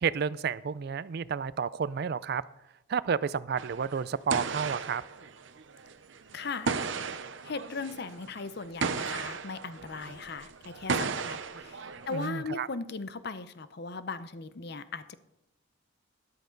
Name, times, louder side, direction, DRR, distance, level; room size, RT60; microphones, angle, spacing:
voice 1, 0.0-2.4 2.9-5.0 12.1-12.7, right 6 dB, 50° right, 18 dB, 0.4 m, -31 dB
sound 1, 3.6-12.3, right 5 dB, 65° right, 0.7 m, -35 dB
voice 2, 6.3-6.7 7.4-15.2, left 4 dB, 50° left, 13 dB, 0.7 m, -38 dB
13.0 x 11.5 x 3.9 m, 0.86 s
head